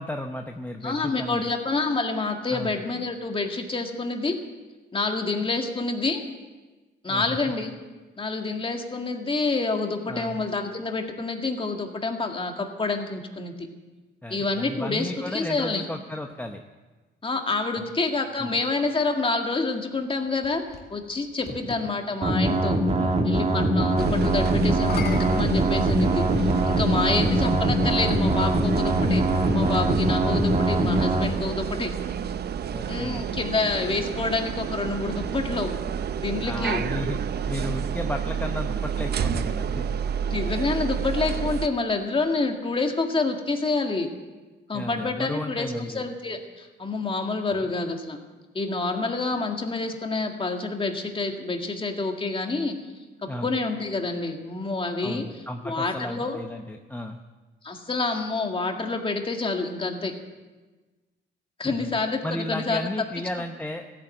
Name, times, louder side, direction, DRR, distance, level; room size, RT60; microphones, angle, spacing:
voice 1, 0.0-1.4 2.5-2.7 7.1-7.4 10.1-10.4 14.2-16.6 17.8-17.9 18.4-18.6 22.9-23.2 27.0-27.8 32.7-33.2 36.4-37.2 37.5-39.9 44.7-46.0 47.5-47.6 53.3-53.5 55.0-57.2 61.6-61.9 62.2-63.8, left 1 dB, 10° left, 4 dB, 0.8 m, -34 dB
voice 2, 0.8-4.4 4.9-6.2 7.0-7.7 8.2-13.7 14.3-15.8 17.2-20.6 20.9-22.8 23.2-29.2 29.5-31.9 32.9-35.7 36.2-36.8 40.3-44.1 44.7-48.2 48.5-52.8 53.4-55.2 55.6-56.4 57.6-60.1 61.6-62.9, left 3 dB, 25° left, 3 dB, 2.0 m, -28 dB
sound 1, 20.0-21.9 24.7-26.5 27.4-27.5 31.2-32.8, left 4 dB, 50° left, 2.2 m, -40 dB
sound 2, 22.2-31.3, right 1 dB, 30° right, 1.6 m, -23 dB
sound 3, 24.0-41.7, right 7 dB, 55° right, 0.7 m, -29 dB
15.0 x 9.5 x 7.7 m, 1.3 s
cardioid pair, 90°, 20 cm